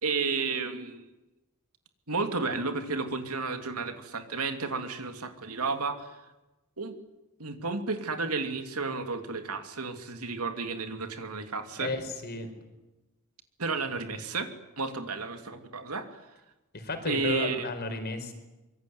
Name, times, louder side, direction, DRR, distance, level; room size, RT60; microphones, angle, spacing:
voice 1, 0.0-1.1 2.1-6.2 6.8-7.0 7.4-11.9 13.6-14.5 14.8-16.2 17.1-17.7, right 4 dB, 85° right, 7 dB, 2.9 m, -32 dB
voice 2, 11.8-12.5 16.7-18.3, left 2 dB, 45° left, 7 dB, 4.7 m, -33 dB
25.5 x 23.0 x 9.6 m, 1.0 s
head